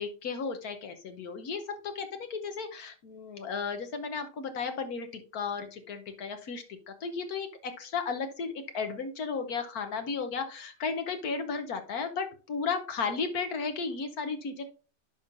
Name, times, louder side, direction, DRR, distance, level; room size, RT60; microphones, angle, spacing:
voice 1, 0.0-14.7, left 5 dB, 65° left, 7 dB, 1.3 m, -34 dB
10.5 x 5.4 x 2.6 m, 0.35 s
omnidirectional pair, 1.8 m